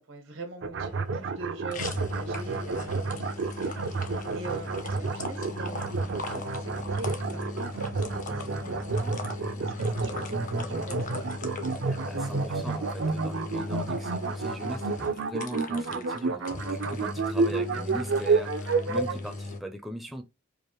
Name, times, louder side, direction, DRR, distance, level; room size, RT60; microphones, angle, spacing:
voice 1, 0.0-11.3 16.6-16.9, right 2 dB, 90° right, 1.3 m, -43 dB
sound 1, 0.6-19.1, right 4 dB, 70° right, 0.5 m, -30 dB
sound 2, 0.8-19.6, left 2 dB, 40° left, 0.7 m, -38 dB
voice 2, 11.9-20.2, equal, ahead, 0.4 m, -40 dB
4.8 x 2.5 x 3.0 m
head